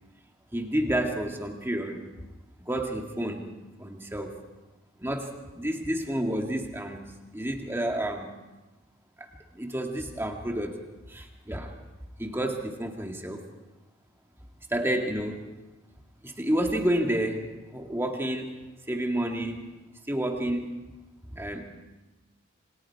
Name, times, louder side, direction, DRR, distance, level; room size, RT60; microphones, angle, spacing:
voice 1, 0.5-2.1 2.6-3.5 3.8-4.4 5.0-8.3 9.2-10.8 11.1-11.7 12.2-13.5 14.7-15.5 16.2-18.5 18.9-19.6 20.1-20.7 21.3-21.8, right 1 dB, 10° right, 2 dB, 2.0 m, -30 dB
28.5 x 25.5 x 4.7 m, 1.1 s
head